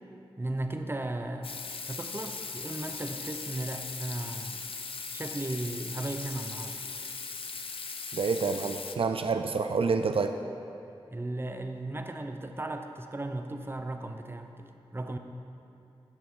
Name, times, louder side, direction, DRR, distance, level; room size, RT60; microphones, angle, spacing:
voice 1, 0.4-1.6 1.9-4.6 5.1-6.8 11.1-15.2, right 2 dB, 25° right, 6 dB, 0.8 m, -36 dB
Water tap faucet / Sink (filling or washing), 1.4-9.0, left 4 dB, 70° left, 0.7 m, -39 dB
voice 2, 8.1-10.4, right 4 dB, 70° right, 7 dB, 0.5 m, -28 dB
17.0 x 6.2 x 4.6 m, 2.8 s
wide cardioid pair, 70°, 10 cm